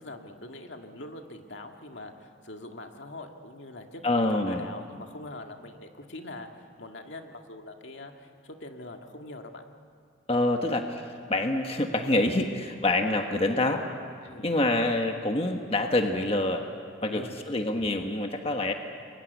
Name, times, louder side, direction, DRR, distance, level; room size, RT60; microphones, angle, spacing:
voice 1, 0.0-4.0 4.3-6.5 6.8-9.6 14.2-14.5 17.0-17.4, left 2 dB, 70° left, 4 dB, 2.0 m, -43 dB
voice 2, 4.0-4.6 10.3-13.8 14.2-16.7 17.0-18.7, left 2 dB, 30° left, 4 dB, 1.3 m, -26 dB
29.0 x 23.0 x 8.2 m, 2.2 s
head